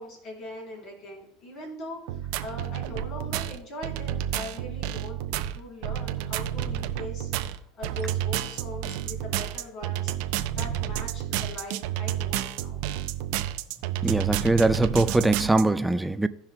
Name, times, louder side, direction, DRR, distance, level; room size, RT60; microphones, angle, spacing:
voice 1, 0.0-5.2 5.5-12.8 13.3-13.4 14.0-14.2, left 1 dB, 50° left, 3.5 m, -41 dB
sound 1, 2.1-15.6, right 11 dB, 70° right, 0.5 m, -30 dB
voice 2, 14.0-16.3, right 2 dB, 5° right, 0.3 m, -22 dB
17.0 x 5.7 x 2.2 m
supercardioid pair, 130°, 0 cm